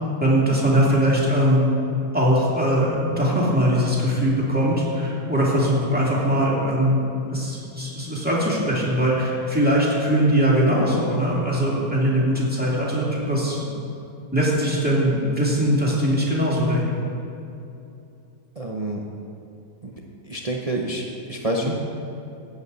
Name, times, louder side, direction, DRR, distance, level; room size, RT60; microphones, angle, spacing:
voice 1, 0.2-1.7 2.1-13.7 14.3-16.9 21.6-21.7, equal, 5° right, -6 dB, 2.4 m, -21 dB
voice 2, 18.6-19.1 19.8-19.9 20.2-21.7, right 1 dB, 50° right, 0 dB, 0.4 m, -28 dB
15.5 x 9.2 x 4.1 m, 2.7 s
omnidirectional pair, 2.0 m